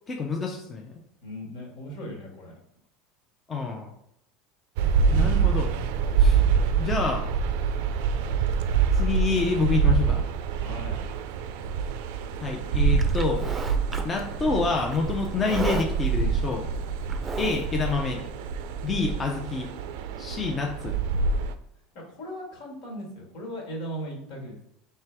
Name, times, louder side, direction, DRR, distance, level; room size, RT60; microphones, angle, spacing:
voice 1, 0.1-0.9 3.5-3.9 5.1-5.7 6.2-6.4 6.8-7.2 8.9-10.3 12.4-13.4 14.0-16.7 17.4-18.2 18.8-19.7 20.2-20.9, left 4 dB, 25° left, 1 dB, 0.6 m, -27 dB
voice 2, 1.2-2.5 6.5-6.6 10.6-11.0 22.1-24.5, equal, 70° left, -1 dB, 1.8 m, -38 dB
sound 1, 4.8-21.5, right 6 dB, 75° right, 0.4 m, -26 dB
Livestock farm animals working animals, 13.0-18.0, right 4 dB, 25° right, 0.5 m, -34 dB
4.5 x 3.3 x 3.4 m, 0.77 s
supercardioid pair, 120°, 0 cm